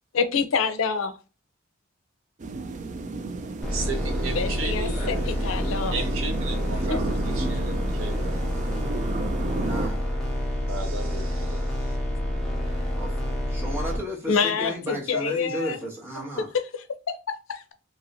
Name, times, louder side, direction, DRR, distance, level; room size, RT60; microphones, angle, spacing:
voice 1, 0.1-1.1 4.3-5.9 6.9-7.0 14.3-15.8 16.5-17.7, left 5 dB, 85° left, 0.5 m, -27 dB
sound 1, 2.4-9.9, right 3 dB, 35° right, 0.3 m, -33 dB
sound 2, 3.6-14.0, equal, 5° left, 0.8 m, -28 dB
voice 2, 3.7-8.8 10.7-12.0, right 4 dB, 80° right, 0.8 m, -36 dB
voice 3, 9.6-10.1 12.9-16.5, equal, 10° right, 1.1 m, -34 dB
2.9 x 2.8 x 2.5 m
head